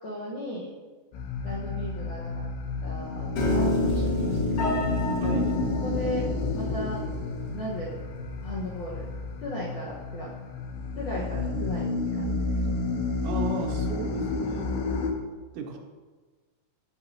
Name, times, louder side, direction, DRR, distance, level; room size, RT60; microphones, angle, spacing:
voice 1, 0.0-0.7 1.4-2.4 2.8-4.8 5.8-6.3 6.5-7.0 7.5-8.0 8.4-9.1 9.4-10.3 11.0-12.7, left 1 dB, 75° left, -6 dB, 1.8 m, -36 dB
sound 1, 1.1-15.1, left 3 dB, 90° left, 3.5 m, -30 dB
Piano, 3.4-9.6, left 1 dB, 55° left, 1.6 m, -32 dB
voice 2, 5.2-5.6 13.2-14.8 15.5-15.8, right 3 dB, 85° right, 1 dB, 3.7 m, -34 dB
11.5 x 8.2 x 2.8 m, 1.3 s
omnidirectional pair, 5.6 m